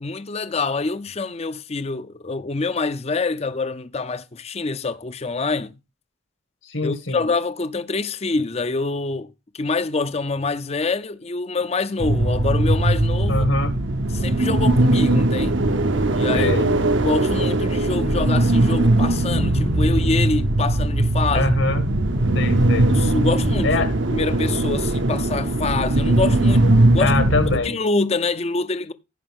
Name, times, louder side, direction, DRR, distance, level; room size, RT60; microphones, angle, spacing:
voice 1, 0.0-5.7 6.8-13.5 14.1-15.6 16.1-16.6 17.0-21.5 22.9-23.8 24.1-26.7 26.9-27.1 27.6-28.9, left 3 dB, 30° left, 0.5 m, -25 dB
voice 2, 6.6-7.3 13.3-13.7 16.3-16.7 21.3-21.8 22.3-22.9 23.6-23.9 27.0-27.8, left 3 dB, 75° left, 1.8 m, -23 dB
sound 1, 12.0-27.6, right 1 dB, 65° right, 0.9 m, -19 dB
15.5 x 5.3 x 3.6 m
head